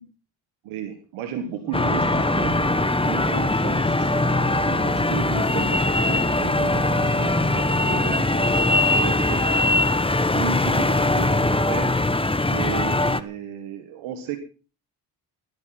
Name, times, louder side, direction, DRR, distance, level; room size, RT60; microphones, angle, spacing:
voice 1, 0.6-2.6 3.0-4.1 4.7-9.9 10.3-11.9 12.4-14.4, right 8 dB, 85° right, 8 dB, 1.7 m, -34 dB
Wind instrument woodwind instrument, 1.6-8.3, right 1 dB, 35° left, 3.3 m, -34 dB
sound 1, 1.7-13.2, left 2 dB, 10° left, 1.3 m, -21 dB
16.0 x 11.5 x 5.8 m, 0.38 s
supercardioid pair, 50°, 48 cm